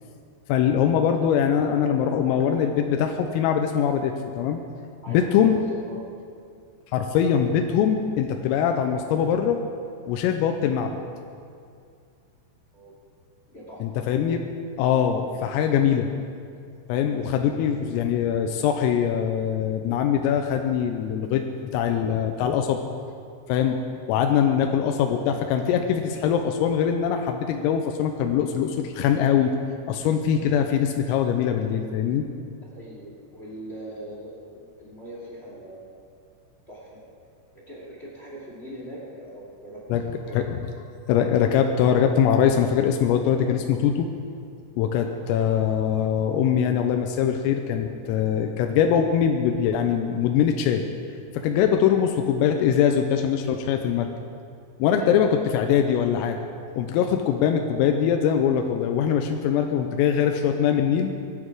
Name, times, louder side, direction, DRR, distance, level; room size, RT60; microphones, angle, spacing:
voice 1, 0.5-4.6 5.1-5.6 6.9-9.6 10.1-11.0 13.8-14.4 14.8-16.1 16.9-21.4 21.7-22.8 23.5-23.8 24.1-29.5 29.9-32.3 39.9-40.6 41.1-44.1 44.8-50.8 51.4-54.1 54.8-56.4 56.8-61.1, left 8 dB, 90° left, 4 dB, 3.4 m, -22 dB
voice 2, 5.0-6.1 12.7-13.0 13.5-14.1 32.7-36.0 36.7-37.0 37.5-40.6 51.6-51.9 54.8-55.2, right 1 dB, 35° left, -5 dB, 1.0 m, -41 dB
20.5 x 10.5 x 4.7 m, 2.3 s
omnidirectional pair, 5.9 m